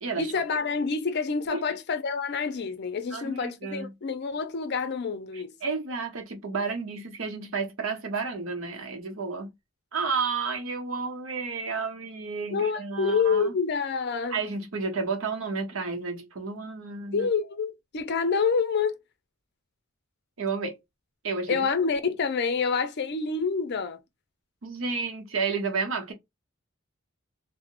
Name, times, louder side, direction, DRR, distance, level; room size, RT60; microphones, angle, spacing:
voice 1, 0.2-5.5 12.5-14.4 17.1-19.0 20.6-20.7 21.5-24.0, left 5 dB, 55° left, 0.5 m, -27 dB
voice 2, 3.1-3.9 5.3-9.5 9.9-13.5 14.3-17.3 20.4-20.7 21.2-21.7 24.6-26.1, right 4 dB, 75° right, 0.8 m, -31 dB
2.7 x 2.1 x 2.4 m
head